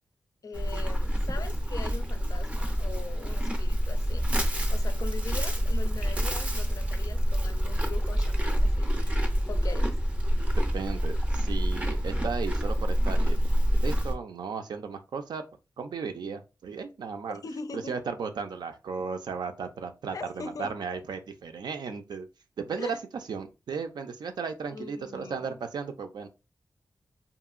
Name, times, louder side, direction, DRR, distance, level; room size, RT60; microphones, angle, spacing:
voice 1, 0.4-4.3 4.7-9.9 17.4-18.0 20.1-20.7 22.8-23.0 24.7-25.6, left 4 dB, 55° left, 0.4 m, -41 dB
Livestock farm animals working animals, 0.5-14.1, equal, 15° right, 0.5 m, -27 dB
voice 2, 10.6-13.4 13.7-15.4 15.8-17.4 17.7-22.3 22.6-26.3, right 5 dB, 85° right, 0.4 m, -35 dB
2.8 x 2.6 x 2.4 m
wide cardioid pair, 110°, 7 cm